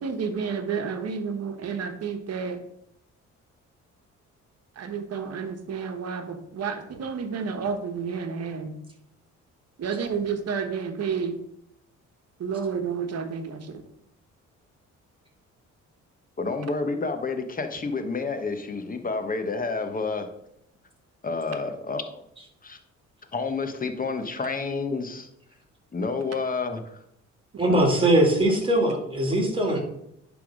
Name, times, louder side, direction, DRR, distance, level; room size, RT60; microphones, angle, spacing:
voice 1, 0.0-2.6 4.8-8.8 9.8-11.4 12.4-13.8 27.6-27.8, right 6 dB, 55° right, 7 dB, 1.2 m, -30 dB
voice 2, 16.4-20.3 21.2-22.2 22.6-22.8 23.3-25.3 25.9-27.0 29.3-29.5, left 4 dB, 30° left, 7 dB, 1.2 m, -29 dB
voice 3, 27.6-29.8, right 1 dB, 15° right, 1 dB, 2.6 m, -21 dB
10.5 x 3.6 x 5.0 m, 0.76 s
cardioid pair, 90°, 30 cm